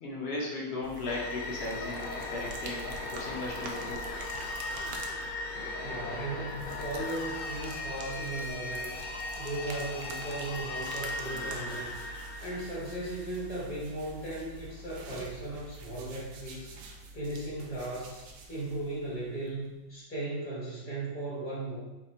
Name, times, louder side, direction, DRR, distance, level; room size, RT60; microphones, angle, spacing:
voice 1, 0.0-4.0, left 2 dB, 50° left, -4 dB, 0.9 m, -37 dB
sound 1, 0.8-19.7, right 3 dB, 85° right, 1.1 m, -46 dB
sound 2, 1.1-13.6, left 2 dB, 70° left, 0.5 m, -38 dB
voice 2, 5.8-9.0 9.4-11.9 12.4-16.7 17.1-18.2 18.5-21.8, right 2 dB, 10° left, -8 dB, 0.8 m, -37 dB
3.7 x 2.8 x 4.3 m, 1.0 s
omnidirectional pair, 1.6 m